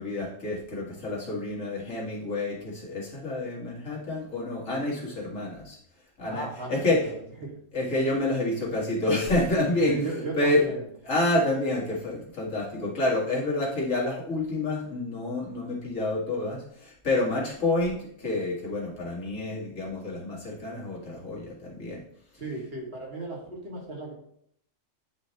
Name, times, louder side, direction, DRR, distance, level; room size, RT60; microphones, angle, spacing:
voice 1, 0.0-5.8 6.2-7.1 7.7-10.7 11.1-22.0, left 2 dB, 85° left, -4 dB, 2.2 m, -28 dB
voice 2, 6.2-7.5 9.8-10.8 22.4-24.1, right 2 dB, 50° right, -3 dB, 2.0 m, -35 dB
9.3 x 3.1 x 4.1 m, 0.68 s
omnidirectional pair, 1.3 m